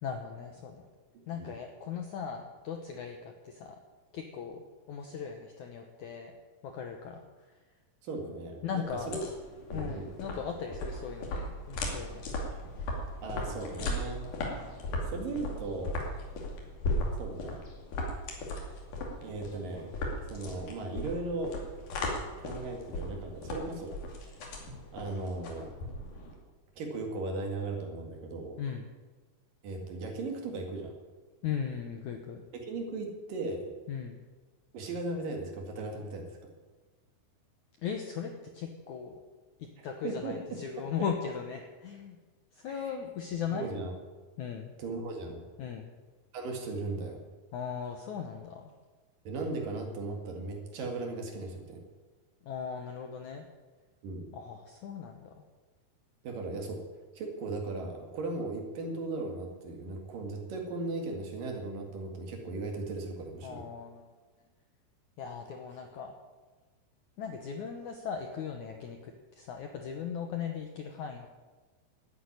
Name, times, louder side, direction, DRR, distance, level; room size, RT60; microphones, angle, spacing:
voice 1, 0.0-0.8 1.3-3.8 4.1-6.3 6.6-7.2 8.6-9.2 9.7-12.3 28.6-28.8 31.4-32.4 33.9-34.2 37.8-39.2 39.6-42.2 42.5-43.7 44.4-44.7 45.6-45.9 47.5-48.7 52.4-53.5 54.3-55.3 63.4-64.0 65.2-66.1 67.2-71.3, left 7 dB, 70° left, 4 dB, 1.8 m, -38 dB
voice 2, 8.0-9.2 9.7-10.1 13.2-14.2 15.0-16.0 17.1-17.7 19.2-19.9 20.3-21.5 22.4-24.0 24.3-24.6 24.9-25.7 26.8-28.6 29.6-30.9 32.5-33.7 34.7-36.2 40.0-40.6 42.7-42.9 43.5-43.9 44.8-45.4 46.3-47.2 49.2-51.8 54.0-54.3 56.2-56.8 57.1-63.6, right 3 dB, 60° right, 2 dB, 3.5 m, -37 dB
sound 1, 8.9-26.3, left 1 dB, 55° left, 3.8 m, -37 dB
12.5 x 9.3 x 9.7 m, 1.3 s
omnidirectional pair, 4.7 m